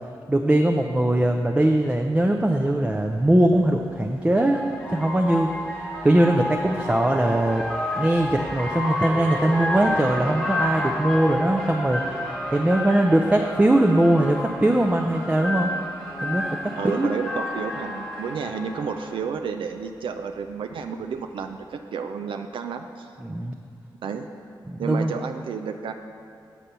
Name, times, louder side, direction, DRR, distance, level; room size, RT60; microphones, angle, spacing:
voice 1, 0.3-5.5 6.0-7.6 8.0-12.0 12.5-15.7 16.2-17.1 23.2-23.5 24.7-25.2, right 1 dB, 15° right, 3 dB, 0.4 m, -21 dB
sound 1, 2.2-2.3 3.7-19.3, left 1 dB, 5° left, 1.5 m, -30 dB
voice 2, 16.8-23.1 24.0-24.3 24.8-25.9, right 6 dB, 85° right, 5 dB, 0.4 m, -31 dB
7.5 x 4.2 x 6.7 m, 2.6 s
cardioid pair, 80°, 9 cm